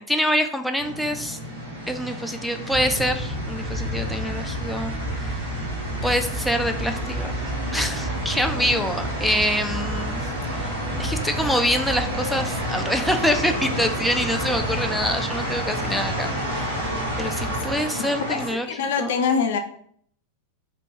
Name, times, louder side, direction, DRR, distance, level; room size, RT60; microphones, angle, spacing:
voice 1, 0.0-1.4 1.9-5.5 6.0-7.3 7.7-10.2 10.6-10.7 11.0-16.7 17.2-18.7 19.0-19.2, equal, ahead, 5 dB, 0.4 m, -25 dB
sound 1, 0.8-18.5, equal, 90° right, 1.7 m, -31 dB
sound 2, 2.7-17.8, right 1 dB, 70° right, 1.3 m, -32 dB
voice 2, 18.7-19.6, left 6 dB, 55° left, 6 dB, 0.6 m, -23 dB
3.4 x 2.9 x 4.6 m, 0.62 s
figure-of-eight pair, 90°, 0 cm